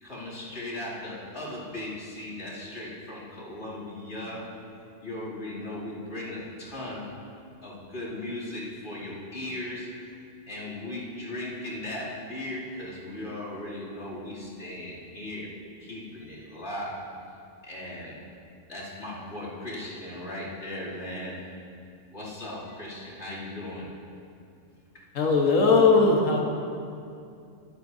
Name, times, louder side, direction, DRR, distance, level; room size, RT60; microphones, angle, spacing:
voice 1, 0.0-4.6 5.0-7.1 7.6-9.9 10.5-15.5 15.8-17.3 17.6-18.2 18.7-21.4 22.1-23.9, left 1 dB, 60° left, -9 dB, 3.1 m, -37 dB
voice 2, 25.1-26.4, left 4 dB, 85° left, 0 dB, 1.6 m, -19 dB
13.0 x 12.5 x 2.7 m, 2.5 s
omnidirectional pair, 1.3 m